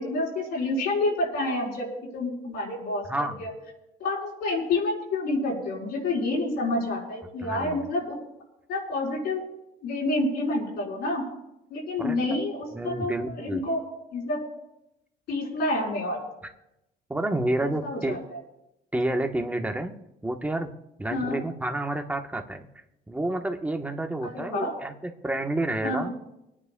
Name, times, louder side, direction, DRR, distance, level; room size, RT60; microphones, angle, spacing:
voice 1, 0.0-1.9 2.1-3.1 3.4-3.5 4.0-8.2 8.7-9.4 9.8-11.2 11.7-13.8 14.1-14.4 15.3-16.2 17.6-18.4 21.1-21.4 24.2-24.7 25.8-26.1, left 2 dB, 75° left, -3 dB, 4.6 m, -28 dB
voice 2, 3.1-3.4 7.4-7.8 12.0-12.2 12.7-13.6 17.1-18.2 18.9-19.9 20.2-20.7 21.0-22.6 23.1-26.1, right 1 dB, 10° right, 4 dB, 1.1 m, -29 dB
29.0 x 9.8 x 2.3 m, 0.89 s
cardioid pair, 110°, 17 cm